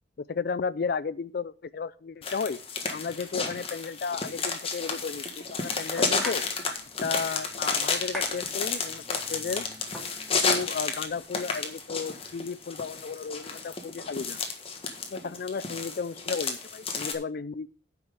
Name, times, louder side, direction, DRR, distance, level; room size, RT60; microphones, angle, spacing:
voice 1, 0.2-2.6 2.9-5.3 5.5-6.4 7.0-9.6 10.4-14.4 15.1-17.7, left 5 dB, 50° left, 0.4 m, -33 dB
sound 1, 2.2-17.1, left 4 dB, 30° left, 1.5 m, -31 dB
sound 2, 5.6-11.2, equal, 5° left, 2.3 m, -44 dB
9.3 x 6.0 x 6.7 m
head